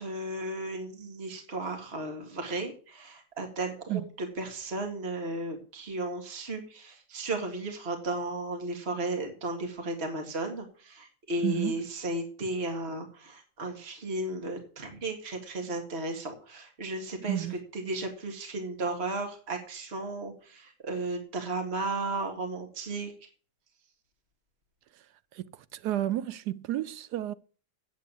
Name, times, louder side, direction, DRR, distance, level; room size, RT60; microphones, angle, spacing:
voice 1, 0.0-23.1, right 2 dB, 40° right, 2.2 m, -34 dB
voice 2, 11.4-11.7 17.3-17.6 25.3-25.4 25.7-27.3, right 13 dB, 80° right, 1.2 m, -31 dB
8.3 x 7.9 x 8.4 m
omnidirectional pair, 1.7 m